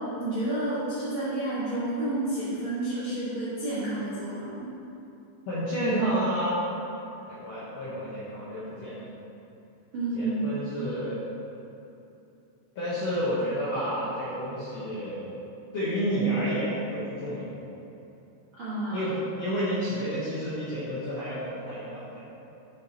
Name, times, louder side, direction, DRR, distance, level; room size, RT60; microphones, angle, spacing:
voice 1, 0.0-4.7 9.9-10.6 18.6-19.1, right 1 dB, 70° right, -11 dB, 1.2 m, -30 dB
voice 2, 5.5-6.6 7.3-9.0 10.1-11.3 12.7-15.3 15.7-17.5 18.9-22.2, equal, 65° left, -11 dB, 1.6 m, -30 dB
8.2 x 5.1 x 4.1 m, 2.8 s
omnidirectional pair, 4.8 m